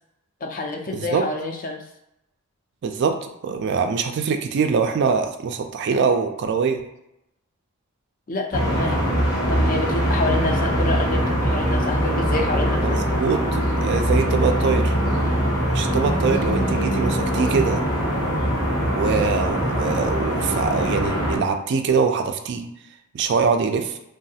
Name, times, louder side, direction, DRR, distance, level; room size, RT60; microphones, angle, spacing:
voice 1, 0.4-1.9 8.3-9.0 9.5-13.0, left 2 dB, 40° left, 3 dB, 0.4 m, -28 dB
voice 2, 0.9-1.2 2.8-6.8 12.8-13.4 13.8-14.9 15.7-17.8 18.9-22.7 23.1-24.0, right 5 dB, 50° right, 6 dB, 0.3 m, -23 dB
sound 1, 8.5-21.4, equal, 90° left, 1.1 m, -22 dB
3.1 x 2.3 x 2.7 m, 0.85 s
head